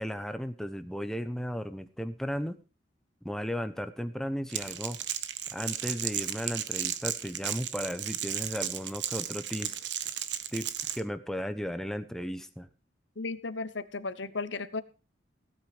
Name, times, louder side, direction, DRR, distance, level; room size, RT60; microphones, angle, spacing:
voice 1, 0.0-2.6 3.2-5.0 5.5-9.8 10.5-12.7, equal, 5° left, 9 dB, 1.0 m, -35 dB
Crackle, 4.5-11.0, right 11 dB, 70° right, 1.2 m, -34 dB
voice 2, 13.2-14.8, left 3 dB, 80° left, 13 dB, 1.1 m, -35 dB
17.0 x 9.0 x 5.0 m, 0.33 s
head